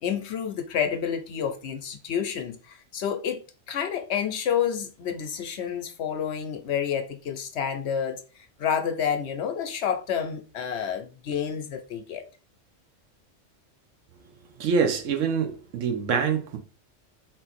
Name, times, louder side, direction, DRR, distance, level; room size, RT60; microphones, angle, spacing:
voice 1, 0.0-3.4 3.7-12.2, left 8 dB, 65° left, 0.8 m, -29 dB
voice 2, 14.6-16.6, right 6 dB, 75° right, 1.0 m, -25 dB
3.7 x 2.7 x 4.1 m
omnidirectional pair, 1.3 m